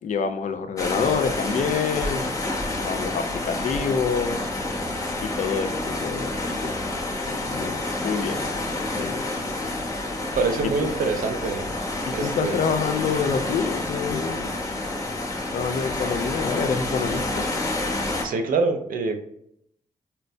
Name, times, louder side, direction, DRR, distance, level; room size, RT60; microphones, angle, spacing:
voice 1, 0.0-2.3 2.8-4.4 5.2-6.7 7.2-8.4 8.9-9.2 10.8-10.9 12.1-14.6 15.5-17.4, left 6 dB, 60° left, 7 dB, 0.4 m, -27 dB
sound 1, 0.8-18.2, left 2 dB, 25° left, 0.8 m, -29 dB
voice 2, 10.3-11.6 12.1-12.6 18.2-19.2, right 4 dB, 75° right, 5 dB, 0.5 m, -25 dB
4.4 x 2.1 x 2.6 m, 0.72 s
cardioid pair, 80°, 14 cm